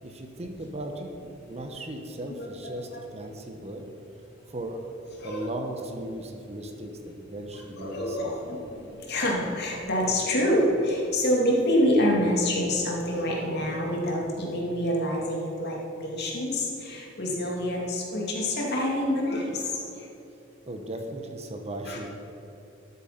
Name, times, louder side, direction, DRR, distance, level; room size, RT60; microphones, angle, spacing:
voice 1, 0.0-1.1 1.5-3.8 4.5-4.8 5.2-8.4 20.7-22.1, right 1 dB, 35° right, 4 dB, 1.0 m, -37 dB
voice 2, 2.3-2.8 5.2-5.5 7.8-20.1 21.9-22.0, left 1 dB, 55° left, -2 dB, 2.5 m, -27 dB
12.5 x 8.3 x 5.8 m, 2.8 s
head